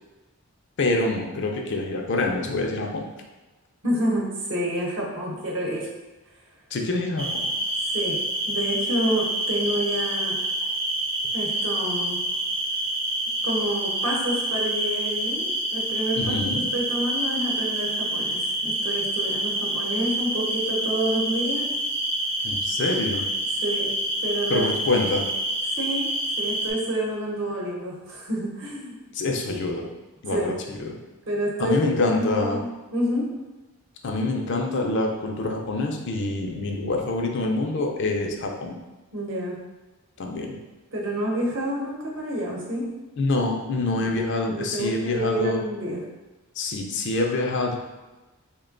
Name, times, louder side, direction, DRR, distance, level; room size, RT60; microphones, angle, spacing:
voice 1, 0.8-3.1 6.7-7.5 16.2-16.6 22.4-23.2 24.5-25.3 29.1-29.9 30.2-31.0 31.6-32.6 34.0-38.8 40.2-40.6 43.2-45.6 46.6-47.8, left 2 dB, 55° left, 1 dB, 0.4 m, -26 dB
voice 2, 3.8-5.9 7.9-10.4 11.3-12.3 13.4-16.3 16.7-21.7 23.5-24.7 25.8-28.9 30.3-30.5 30.8-30.9 31.3-32.6 32.9-33.3 39.1-39.6 40.9-42.9 43.9-44.1 44.5-46.1, right 1 dB, 55° right, -3 dB, 0.9 m, -28 dB
sound 1, 7.2-26.7, right 1 dB, 25° right, 0.6 m, -27 dB
3.6 x 2.2 x 3.7 m, 1.2 s
head